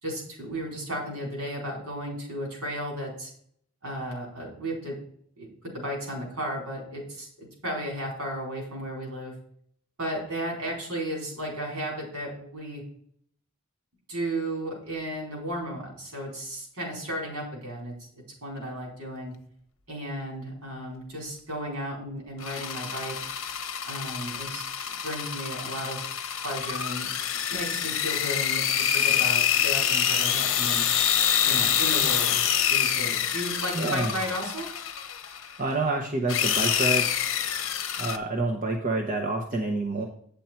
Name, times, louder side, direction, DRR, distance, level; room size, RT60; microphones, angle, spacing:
voice 1, 0.0-3.3 3.8-5.0 5.4-5.5 5.7-9.3 10.0-12.8 14.1-17.9 18.4-19.3 19.9-23.1 23.9-24.7 25.0-26.0 26.4-27.1 27.5-30.9 31.4-32.4 32.7-34.7, right 1 dB, 90° right, -1 dB, 4.3 m, -34 dB
sound 1, 22.4-35.6 36.3-38.2, left 9 dB, 60° left, 0.8 m, -26 dB
voice 2, 33.7-34.1 35.6-37.1 38.0-40.0, right 2 dB, 35° right, 1 dB, 1.0 m, -27 dB
9.0 x 7.0 x 4.5 m, 0.63 s
head